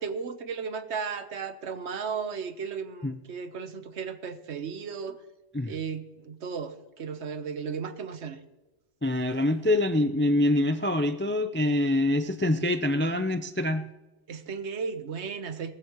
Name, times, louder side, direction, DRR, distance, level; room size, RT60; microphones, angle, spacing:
voice 1, 0.0-5.2 5.7-8.4 14.3-15.7, right 6 dB, 70° right, 10 dB, 1.2 m, -35 dB
voice 2, 9.0-13.8, left 1 dB, 20° left, 9 dB, 0.3 m, -25 dB
19.0 x 13.5 x 3.1 m, 1.0 s
omnidirectional pair, 1.2 m